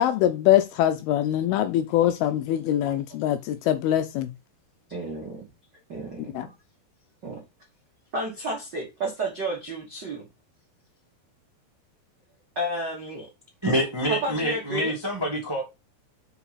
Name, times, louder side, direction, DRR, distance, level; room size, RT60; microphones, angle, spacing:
voice 1, 0.0-4.3 6.4-6.5, left 12 dB, 80° left, 2.3 m, -23 dB
voice 2, 4.9-5.5 5.9-6.5 7.2-7.4 8.1-10.2 12.5-13.3 14.1-14.9, right 1 dB, 75° right, 1.0 m, -31 dB
voice 3, 13.6-15.6, equal, 15° right, 0.9 m, -26 dB
5.8 x 4.7 x 4.1 m
omnidirectional pair, 4.8 m